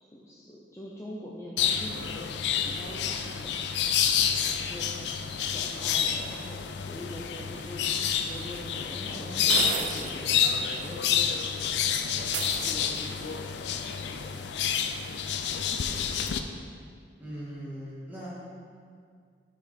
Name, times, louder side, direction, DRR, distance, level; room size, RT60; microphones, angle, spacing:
voice 1, 0.1-3.6 4.2-5.0 5.4-7.9 8.2-14.5, equal, 15° left, -5 dB, 0.5 m, -43 dB
sound 1, 1.6-16.4, left 8 dB, 75° left, 0.4 m, -29 dB
sound 2, 8.1-8.2 9.5-10.2 10.6-10.7 12.3-13.2, right 7 dB, 90° right, 0.6 m, -32 dB
voice 2, 17.2-18.3, equal, 10° right, -9 dB, 1.8 m, -39 dB
6.7 x 5.0 x 4.3 m, 2.1 s
head